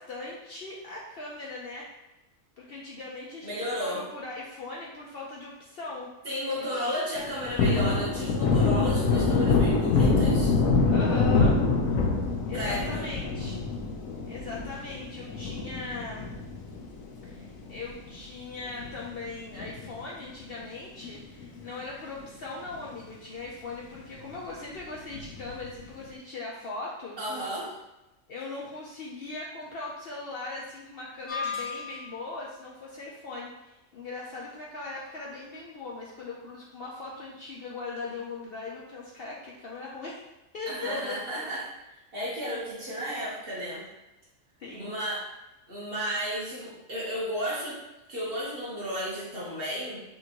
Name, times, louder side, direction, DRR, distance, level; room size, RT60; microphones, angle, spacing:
voice 1, 0.0-1.9 2.6-6.1 6.6-6.9 10.9-11.6 12.5-13.6 14.3-16.3 17.2-27.2 28.3-40.2 40.5-41.2 44.6-44.9, left 3 dB, 55° left, -4 dB, 0.7 m, -39 dB
voice 2, 3.4-4.0 6.2-10.5 12.5-13.1 27.2-27.7 40.7-43.8 44.7-45.2 45.7-47.8 48.1-50.0, equal, 45° right, -7 dB, 1.4 m, -33 dB
Thunder, 7.2-17.9 18.3-18.4 18.7-20.2 20.5-20.7 21.0-21.8 22.2-22.3 22.7-22.8 25.1-25.7, left 4 dB, 90° left, 1.1 m, -25 dB
sound 1, 31.3-32.3, left 6 dB, 40° left, 1.1 m, -34 dB
5.4 x 2.6 x 2.9 m, 0.96 s
omnidirectional pair, 1.4 m